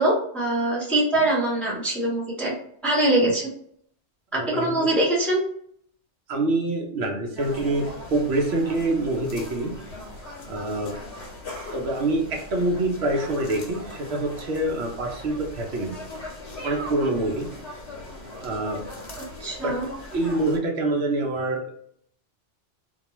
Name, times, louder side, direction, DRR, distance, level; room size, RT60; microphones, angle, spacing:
voice 1, 0.0-2.5 2.8-3.5 4.3-5.4 19.2-19.9, right 1 dB, ahead, -5 dB, 0.6 m, -23 dB
voice 2, 4.3-4.9 6.3-9.7 10.4-10.9 11.7-16.0 16.6-17.5 18.4-18.8 19.6-19.8 20.1-21.7, right 2 dB, 70° right, 0 dB, 0.8 m, -26 dB
sound 1, 7.4-20.6, left 1 dB, 85° left, 1.1 m, -39 dB
2.3 x 2.2 x 2.9 m, 0.66 s
omnidirectional pair, 1.2 m